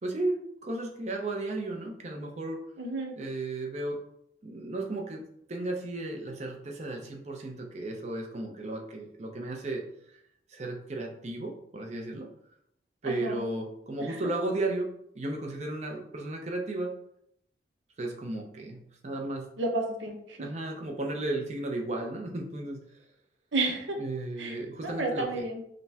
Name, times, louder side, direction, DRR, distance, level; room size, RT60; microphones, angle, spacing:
voice 1, 0.0-2.6 3.2-4.0 4.4-9.8 10.5-12.3 13.0-14.9 15.1-16.9 18.0-19.5 20.4-22.8 24.0-25.4, right 2 dB, 40° right, 2 dB, 0.6 m, -34 dB
voice 2, 2.8-3.1 13.0-13.4 19.6-20.4 23.5-24.0 24.4-25.6, right 2 dB, 90° right, 3 dB, 0.8 m, -31 dB
5.1 x 2.2 x 2.8 m, 0.73 s
head